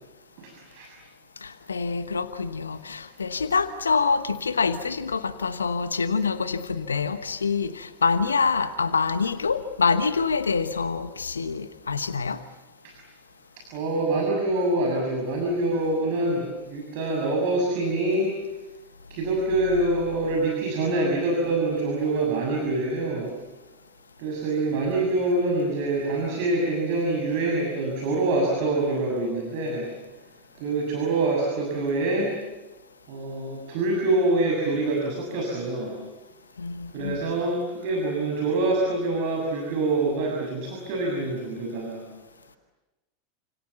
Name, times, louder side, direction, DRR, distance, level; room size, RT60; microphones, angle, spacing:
voice 1, 0.4-0.9 12.8-12.9 13.7-18.3 19.1-23.3 24.2-29.9 30.6-32.3 33.1-35.9 36.9-42.0, right 2 dB, 50° right, 0 dB, 6.9 m, -25 dB
voice 2, 1.4-12.4 36.6-37.2, left 5 dB, 80° left, 12 dB, 1.1 m, -26 dB
29.0 x 27.0 x 7.1 m, 1.1 s
figure-of-eight pair, 85°, 0 cm